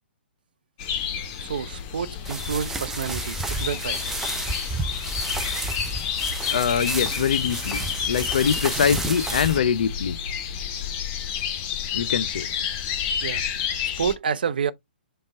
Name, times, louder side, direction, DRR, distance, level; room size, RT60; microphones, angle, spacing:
sound 1, 0.8-14.1, left 8 dB, 30° left, 0.9 m, -30 dB
voice 1, 1.4-4.0 13.2-13.4 14.0-14.7, right 7 dB, 55° right, 0.6 m, -28 dB
sound 2, 2.2-9.6, right 2 dB, 5° right, 0.6 m, -31 dB
voice 2, 6.5-10.2 11.9-12.5, left 7 dB, 55° left, 0.5 m, -23 dB
5.1 x 2.3 x 4.3 m
figure-of-eight pair, 120°, 6 cm